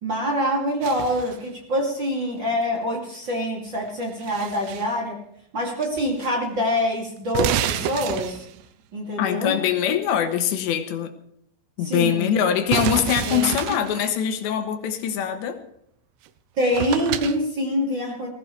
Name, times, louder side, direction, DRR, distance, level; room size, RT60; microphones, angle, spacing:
voice 1, 0.0-5.2 5.5-8.4 8.9-9.6 11.8-12.3 13.2-13.4 16.6-18.3, equal, 30° right, -2 dB, 2.9 m, -25 dB
sound 1, 0.8-1.5 3.8-4.9 5.8-6.3 6.6-6.7 7.3-8.7 12.7-14.1 16.3-16.4 16.7-17.4, right 11 dB, 80° right, 2.8 m, -28 dB
voice 2, 9.2-11.1 11.8-15.6, left 9 dB, 80° left, 7 dB, 3.4 m, -23 dB
20.0 x 16.0 x 3.4 m, 0.71 s
omnidirectional pair, 5.1 m